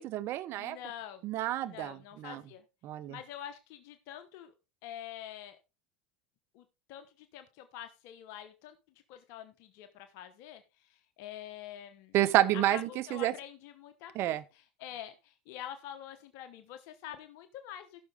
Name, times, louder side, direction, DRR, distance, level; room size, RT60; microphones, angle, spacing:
voice 1, 0.0-0.8 1.2-2.4 2.8-3.2 12.1-13.3 14.1-14.4, right 14 dB, 55° right, 0.9 m, -29 dB
voice 2, 0.6-1.2 1.6-2.6 3.1-4.5 4.8-5.6 6.5-8.8 9.1-12.1 12.5-18.0, left 11 dB, 65° left, 1.1 m, -46 dB
15.0 x 6.4 x 3.5 m
hypercardioid pair, 90°, 5 cm